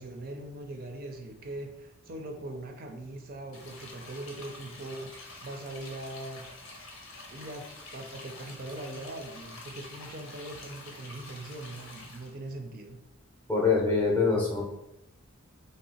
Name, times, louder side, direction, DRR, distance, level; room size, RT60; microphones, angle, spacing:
voice 1, 0.0-6.4 7.3-7.7 7.9-13.0, right 1 dB, 45° right, 3 dB, 0.4 m, -41 dB
sound 1, 3.5-12.3, left 2 dB, 75° left, 0.9 m, -47 dB
voice 2, 13.5-14.6, left 4 dB, 10° left, -3 dB, 0.6 m, -24 dB
3.2 x 2.7 x 4.2 m, 0.88 s
head